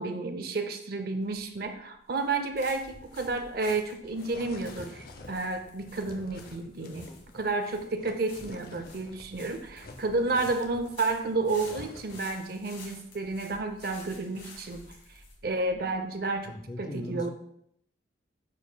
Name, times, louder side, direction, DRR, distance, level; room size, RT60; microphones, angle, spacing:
voice 1, 0.0-7.1 7.3-14.8 15.4-17.3, right 3 dB, 50° right, 7 dB, 0.6 m, -31 dB
sound 1, 1.2-16.7, left 3 dB, 75° left, 1.9 m, -52 dB
sound 2, 3.0-9.3 9.6-12.3, left 2 dB, 50° left, 0.7 m, -49 dB
voice 2, 6.8-7.2 9.5-9.6 9.9-10.0 16.5-17.3, left 1 dB, 20° left, 6 dB, 0.4 m, -41 dB
9.3 x 5.1 x 2.2 m, 0.72 s
head